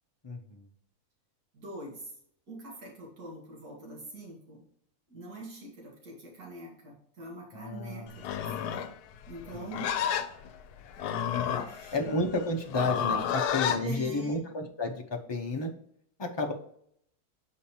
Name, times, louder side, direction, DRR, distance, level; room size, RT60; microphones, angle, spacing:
voice 1, 0.2-0.7 7.5-8.1 9.5-9.6 11.9-15.7 16.2-16.5, left 2 dB, 30° left, 1 dB, 0.5 m, -31 dB
voice 2, 1.5-2.2 2.5-4.6 5.1-8.9 9.3-9.9 11.5-12.2 13.2-13.4 13.8-14.4, right 2 dB, 75° right, -2 dB, 2.2 m, -44 dB
Livestock farm animals working animals, 8.1-13.8, left 9 dB, 80° left, 1.1 m, -31 dB
7.0 x 5.1 x 2.8 m, 0.67 s
omnidirectional pair, 1.7 m